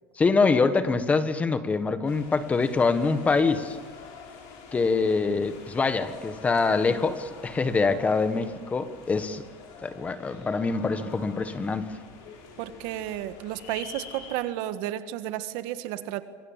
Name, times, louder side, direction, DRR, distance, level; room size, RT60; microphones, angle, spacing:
voice 1, 0.2-3.8 4.7-9.4 9.8-11.9, left 4 dB, 15° left, 11 dB, 1.4 m, -24 dB
sound 1, 2.1-14.4, left 5 dB, 60° left, 7.3 m, -46 dB
voice 2, 12.6-16.2, right 13 dB, 65° right, 10 dB, 1.6 m, -32 dB
26.5 x 24.0 x 7.4 m, 1.5 s
supercardioid pair, 140°, 8 cm